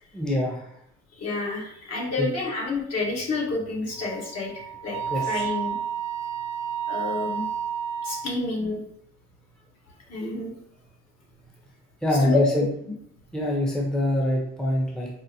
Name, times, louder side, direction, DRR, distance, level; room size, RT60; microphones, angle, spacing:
voice 1, 0.1-0.8 2.2-2.3 5.1-5.4 12.0-12.7 13.3-15.1, left 1 dB, ahead, -2 dB, 0.7 m, -25 dB
voice 2, 1.2-4.5 4.8-5.8 6.9-7.4 8.0-8.8 10.1-10.5 12.2-12.4, left 3 dB, 55° left, -4 dB, 1.5 m, -29 dB
Wind instrument woodwind instrument, 4.0-8.3, right 8 dB, 65° right, 0.5 m, -31 dB
5.3 x 2.0 x 2.7 m, 0.71 s
cardioid pair, 90°, 30 cm